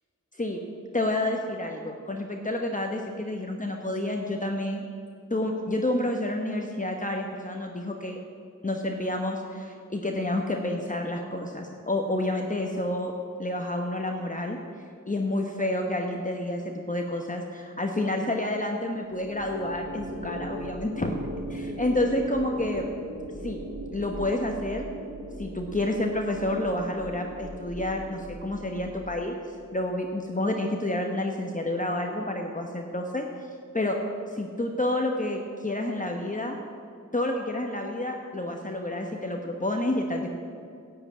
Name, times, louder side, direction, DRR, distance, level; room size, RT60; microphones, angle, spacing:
voice 1, 0.9-4.8 5.3-8.2 8.6-13.1 13.4-14.6 15.1-21.1 21.8-22.8 23.4-23.6 23.9-24.9 25.4-33.2 33.7-34.0 34.3-36.6 37.1-40.3, left 1 dB, 25° left, 2 dB, 1.1 m, -29 dB
sound 1, 19.1-29.6, right 1 dB, 65° right, 3.2 m, -39 dB
10.5 x 7.9 x 8.6 m, 2.4 s
cardioid pair, 50°, 31 cm